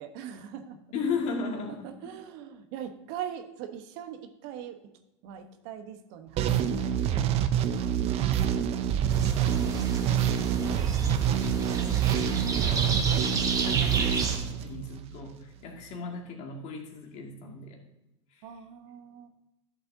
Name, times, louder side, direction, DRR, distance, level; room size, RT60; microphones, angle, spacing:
voice 1, 0.0-0.8 1.7-4.8 5.2-7.5 18.4-19.3, right 9 dB, 55° right, 7 dB, 1.1 m, -42 dB
voice 2, 0.9-1.9 10.6-10.7 11.0-17.8 18.3-18.4, left 5 dB, 45° left, 1 dB, 2.3 m, -37 dB
sound 1, 6.4-15.2, right 9 dB, 40° right, 0.8 m, -26 dB
sound 2, 9.1-14.4, right 4 dB, 20° right, 1.5 m, -32 dB
12.0 x 7.6 x 2.8 m, 0.94 s
hypercardioid pair, 100°, 16 cm